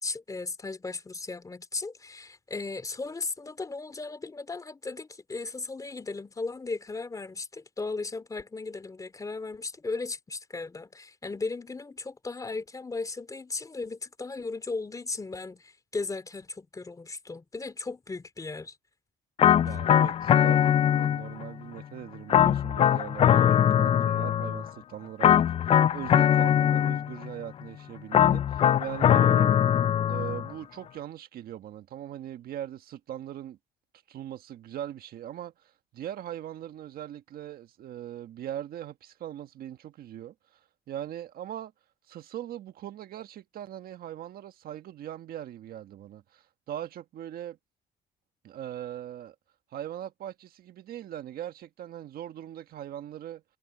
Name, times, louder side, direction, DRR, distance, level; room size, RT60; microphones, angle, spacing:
voice 1, 0.0-18.8, left 3 dB, 20° left, 2.9 m, -36 dB
sound 1, 19.4-21.5 22.3-24.7 25.2-27.3 28.1-30.5, left 10 dB, 35° left, 0.4 m, -22 dB
voice 2, 19.6-29.6 30.1-33.6 34.1-40.6 40.9-41.7 42.1-47.6 48.4-49.3 49.7-53.4, right 11 dB, 60° right, 1.5 m, -40 dB
cardioid pair, 110°, 17 cm